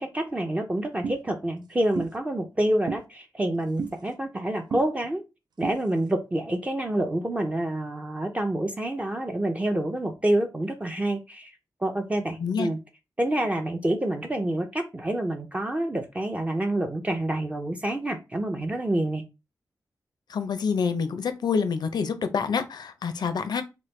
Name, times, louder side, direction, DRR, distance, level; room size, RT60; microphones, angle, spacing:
voice 1, 0.0-5.2 5.6-11.5 11.8-12.8 13.2-19.2, right 1 dB, 20° right, 0.4 m, -27 dB
sound 1, 1.0-1.2 1.9-2.1 2.9-3.0 3.8-3.9 4.7-4.8 5.6-5.8, right 5 dB, 80° right, 0.4 m, -31 dB
voice 2, 20.3-23.6, left 5 dB, 80° left, 0.5 m, -27 dB
3.0 x 2.1 x 3.1 m
wide cardioid pair, 90°, 7 cm